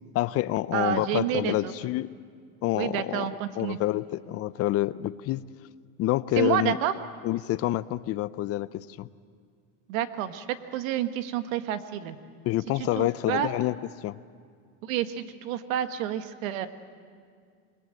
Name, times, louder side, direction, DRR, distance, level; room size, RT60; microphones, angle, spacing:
voice 1, 0.1-2.1 2.6-3.3 3.6-5.4 6.0-6.8 7.2-9.1 12.4-13.7 14.0-14.2, left 15 dB, 35° left, 16 dB, 0.6 m, -27 dB
voice 2, 0.7-1.7 2.7-3.8 6.4-6.9 9.9-12.2 12.8-13.5 14.8-16.7, right 11 dB, 75° right, 9 dB, 1.7 m, -29 dB
27.5 x 21.5 x 7.9 m, 2.1 s
supercardioid pair, 135°, 41 cm